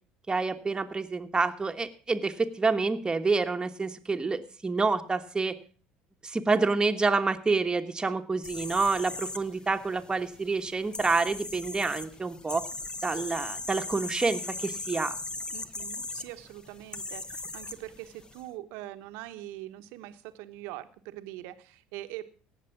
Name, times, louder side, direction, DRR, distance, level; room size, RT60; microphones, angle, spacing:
voice 1, 0.3-5.5 6.2-12.6 13.0-15.1, right 4 dB, 20° right, 7 dB, 1.4 m, -28 dB
sound 1, 8.4-18.4, left 2 dB, 20° left, 1.1 m, -39 dB
voice 2, 15.5-22.2, right 15 dB, 75° right, 9 dB, 1.1 m, -43 dB
17.0 x 6.7 x 6.0 m, 0.40 s
hypercardioid pair, 75°, 4 cm